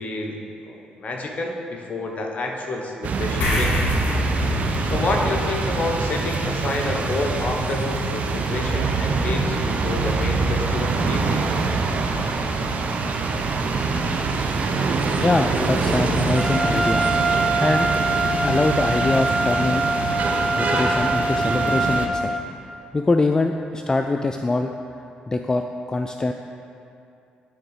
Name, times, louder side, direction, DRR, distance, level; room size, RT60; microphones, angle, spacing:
voice 1, 0.0-3.8 4.8-11.5, left 2 dB, 50° left, 1 dB, 1.0 m, -28 dB
sound 1, 3.0-22.1, right 4 dB, 55° right, 0.7 m, -24 dB
sound 2, 3.4-10.2, left 1 dB, 75° left, 1.7 m, -30 dB
voice 2, 15.2-17.1 17.6-17.9 18.4-19.8 20.6-22.4 22.9-24.7 25.3-26.3, left 2 dB, 20° left, 5 dB, 0.3 m, -23 dB
Trumpet, 16.4-22.4, right 2 dB, 10° right, 0.7 m, -24 dB
10.0 x 3.6 x 4.9 m, 2.6 s
supercardioid pair, 70°, 3 cm